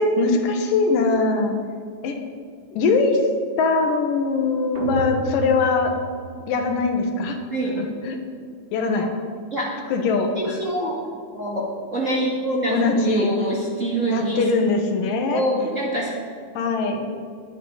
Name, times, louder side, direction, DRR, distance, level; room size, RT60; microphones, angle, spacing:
voice 1, 0.0-1.5 2.0-2.2 2.7-3.2 3.6-5.9 6.5-7.4 7.8-8.2 8.7-9.1 9.9-10.6 12.7-13.3 14.1-15.4 16.5-17.1, left 3 dB, 80° left, 4 dB, 2.9 m, -21 dB
sound 1, 4.7-6.9, left 1 dB, 50° right, 1.3 m, -32 dB
voice 2, 10.3-10.9 11.3-11.6 11.9-14.4 15.3-16.1, right 1 dB, 30° right, -5 dB, 1.7 m, -25 dB
21.5 x 9.2 x 4.0 m, 2.3 s
omnidirectional pair, 3.9 m